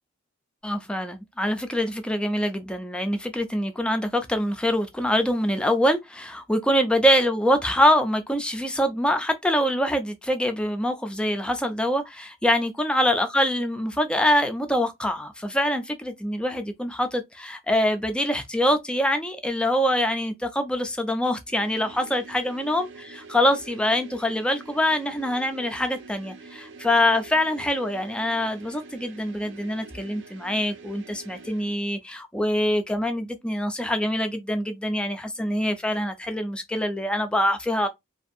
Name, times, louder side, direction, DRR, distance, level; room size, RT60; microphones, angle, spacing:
voice 1, 0.6-22.9 23.3-37.9, left 1 dB, 5° left, 0.3 m, -24 dB
sound 1, 21.5-31.8, right 4 dB, 55° right, 0.5 m, -46 dB
2.5 x 2.3 x 2.5 m
head